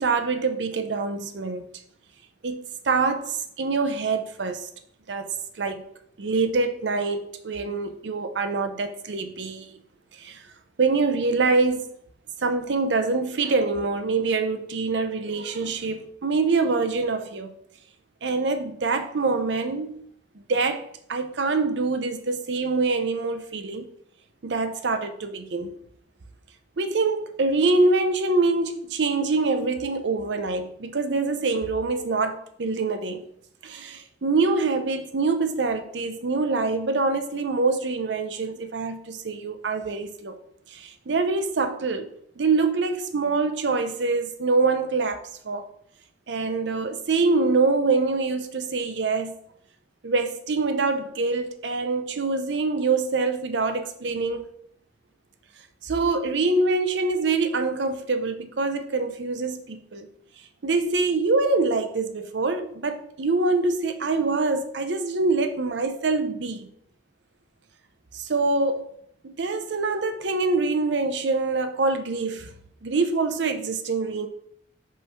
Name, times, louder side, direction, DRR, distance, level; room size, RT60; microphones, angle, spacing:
voice 1, 0.0-1.6 2.4-4.7 5.1-5.8 6.2-9.8 10.2-10.4 10.8-12.0 12.4-17.5 18.2-20.0 20.5-23.9 24.4-25.8 26.8-33.2 33.6-40.4 40.7-42.1 42.4-45.6 46.3-49.3 50.0-54.5 55.8-60.1 60.6-66.7 68.1-68.9 69.2-72.5 72.8-74.3, right 3 dB, 80° right, 0.6 m, -25 dB
5.5 x 3.2 x 5.5 m
head